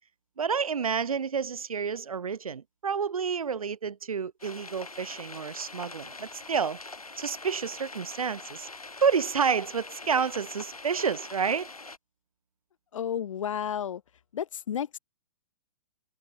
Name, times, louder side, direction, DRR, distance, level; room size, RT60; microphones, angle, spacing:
voice 1, 0.4-6.8 7.2-8.7 9.0-11.7, right 6 dB, 75° right, 1.0 m, -29 dB
sound 1, 4.4-12.0, left 3 dB, 90° left, 4.0 m, -43 dB
voice 2, 12.9-14.0 14.3-15.0, left 9 dB, 65° left, 1.5 m, -32 dB
figure-of-eight pair, 115°, 18 cm